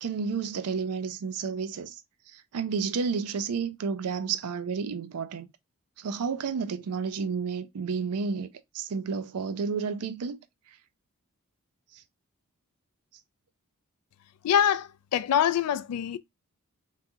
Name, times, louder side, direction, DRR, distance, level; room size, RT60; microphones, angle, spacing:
voice 1, 0.0-1.9 2.3-5.5 6.0-8.5 8.7-10.4, right 5 dB, 90° right, 0.4 m, -31 dB
voice 2, 14.4-16.2, left 9 dB, 85° left, 0.3 m, -24 dB
3.0 x 2.7 x 2.2 m
head